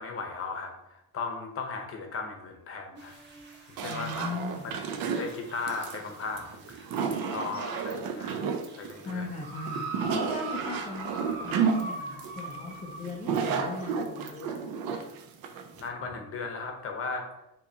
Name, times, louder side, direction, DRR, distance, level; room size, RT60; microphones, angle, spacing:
voice 1, 0.0-3.1 3.8-4.3 4.6-4.7 5.1-8.4 8.8-9.3 15.8-17.3, left 4 dB, 35° left, 3 dB, 0.8 m, -36 dB
sound 1, 3.0-8.9, right 2 dB, 30° right, 1.1 m, -55 dB
voice 2, 3.8-4.7 9.0-9.8 10.1-11.1 11.4-14.6, left 3 dB, 20° left, -2 dB, 0.4 m, -38 dB
sound 2, 3.8-15.9, right 6 dB, 70° right, 0.6 m, -32 dB
sound 3, 9.4-13.1 13.9-14.0, right 2 dB, 10° right, 1.3 m, -39 dB
6.7 x 2.9 x 2.7 m, 0.87 s
cardioid pair, 165°, 38 cm